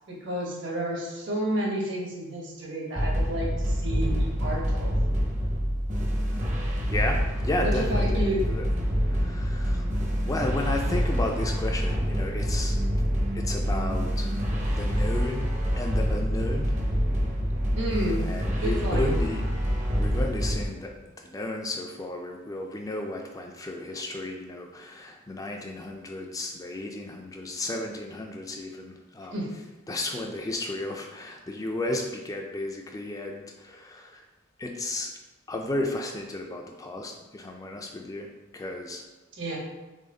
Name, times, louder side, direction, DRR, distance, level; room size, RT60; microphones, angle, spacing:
voice 1, 0.1-4.9 7.6-8.5 17.7-18.2 18.6-19.1 29.3-29.5 39.4-39.6, equal, 60° right, -2 dB, 1.1 m, -31 dB
sound 1, 3.0-20.7, equal, 35° right, 0.7 m, -26 dB
voice 2, 6.9-8.6 9.0-9.9 10.2-12.8 13.3-14.3 14.7-15.5 15.8-16.8 18.2-19.5 20.0-29.4 29.9-34.2 34.6-35.1 35.5-39.0, left 1 dB, 15° left, 2 dB, 0.3 m, -33 dB
4.1 x 3.4 x 3.8 m, 1.1 s
head